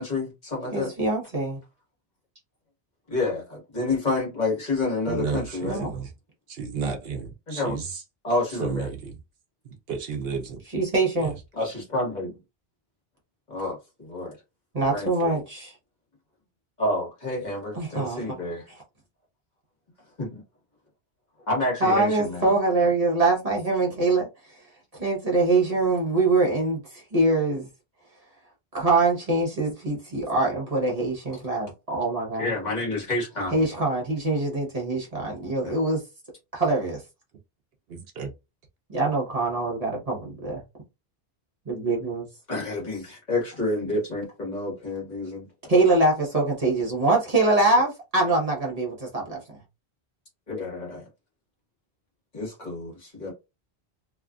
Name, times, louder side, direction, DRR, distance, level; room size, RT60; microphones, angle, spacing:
voice 1, 0.0-0.9 3.1-5.8 7.5-7.8 8.2-8.9 11.5-12.4 13.5-14.4 14.9-15.4 16.8-18.7 20.2-20.4 21.5-22.5 22.8-22.9 32.4-33.7 35.6-35.8 42.5-45.5 50.5-51.0 52.3-53.3, left 2 dB, 45° left, 1.5 m, -29 dB
voice 2, 0.7-1.6 5.6-5.9 10.7-11.3 14.7-15.7 17.7-18.2 21.8-24.3 25.0-27.7 28.7-32.5 33.5-36.0 36.5-37.0 38.9-40.6 41.7-42.3 45.7-49.4, right 2 dB, 40° right, 1.0 m, -24 dB
voice 3, 5.0-6.1 6.5-8.0 8.6-9.2 9.6-10.6 11.2-11.3 37.9-38.3, right 5 dB, 70° right, 0.9 m, -32 dB
2.9 x 2.4 x 2.3 m
omnidirectional pair, 1.1 m